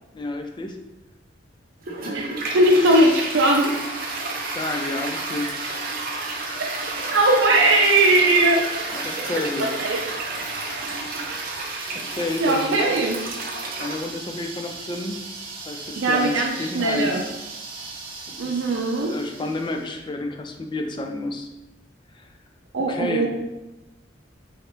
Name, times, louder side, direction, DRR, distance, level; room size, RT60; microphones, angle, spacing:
voice 1, 0.1-0.8 4.5-5.5 8.9-9.7 11.9-12.9 13.8-15.2 15.7-17.3 18.4-18.7 19.0-21.5 22.1-22.3 22.8-23.3, left 2 dB, 25° left, 4 dB, 0.4 m, -30 dB
Toilet flush, 1.8-19.7, right 3 dB, 50° right, 0.7 m, -32 dB
voice 2, 2.1-3.7 7.0-8.6 9.8-10.0 11.3-11.5 12.4-13.2 16.0-17.2 18.4-19.1 22.7-23.3, right 2 dB, 90° right, -1 dB, 0.5 m, -19 dB
3.8 x 3.2 x 2.9 m, 0.99 s
head